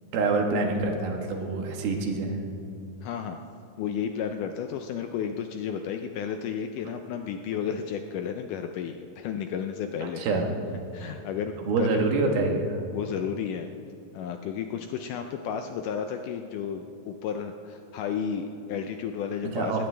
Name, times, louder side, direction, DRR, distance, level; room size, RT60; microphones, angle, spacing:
voice 1, 0.1-2.4 10.0-10.5 11.7-12.8 19.4-19.9, right 3 dB, 80° right, 2 dB, 3.3 m, -26 dB
voice 2, 3.0-3.4 3.8-10.2 10.9-12.1 12.9-13.7 14.1-19.9, left 7 dB, 80° left, 6 dB, 1.9 m, -32 dB
20.5 x 16.0 x 3.4 m, 2.6 s
omnidirectional pair, 4.2 m